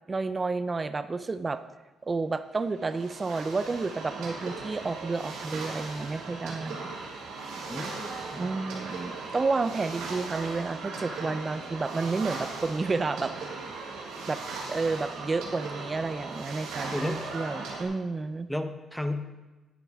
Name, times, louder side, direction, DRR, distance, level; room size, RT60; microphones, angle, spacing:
voice 1, 0.1-1.6 2.0-6.9 8.4-13.3 14.3-14.4 14.7-18.5, right 3 dB, 30° right, 12 dB, 0.5 m, -30 dB
sound 1, 2.6-17.8, right 3 dB, 90° right, 1.7 m, -38 dB
voice 2, 7.7-8.5 16.9-17.2 18.5-19.2, left 1 dB, ahead, 7 dB, 0.8 m, -33 dB
10.0 x 9.3 x 3.6 m, 1.1 s
cardioid pair, 90°, 0 cm